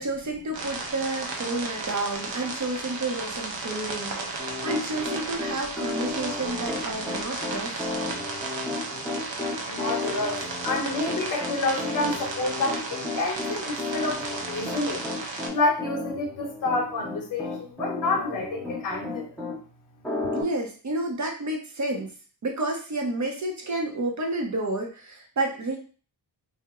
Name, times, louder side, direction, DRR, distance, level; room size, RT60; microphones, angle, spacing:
voice 1, 0.0-7.8 20.3-22.1 22.4-25.8, right 2 dB, 40° right, 1 dB, 0.7 m, -30 dB
sound 1, 0.5-15.5, right 3 dB, 80° right, 0.8 m, -34 dB
Piano, 4.4-19.6 20.0-20.4, left 3 dB, 5° left, 0.9 m, -33 dB
voice 2, 9.6-15.1 15.5-19.4, left 2 dB, 45° left, 0 dB, 0.8 m, -29 dB
3.0 x 2.0 x 3.5 m, 0.38 s
wide cardioid pair, 155°, 44 cm